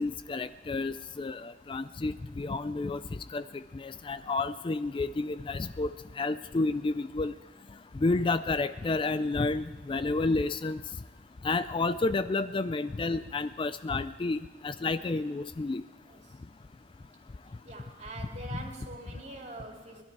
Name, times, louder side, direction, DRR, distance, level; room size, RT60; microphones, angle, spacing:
voice 1, 0.0-3.0 3.3-3.4 3.7-7.3 8.0-10.8 11.4-15.8, left 3 dB, 30° left, 12 dB, 0.4 m, -30 dB
voice 2, 16.1-16.4 17.7-20.0, right 2 dB, 40° right, 1 dB, 2.3 m, -44 dB
20.5 x 12.0 x 4.7 m, 1.4 s
head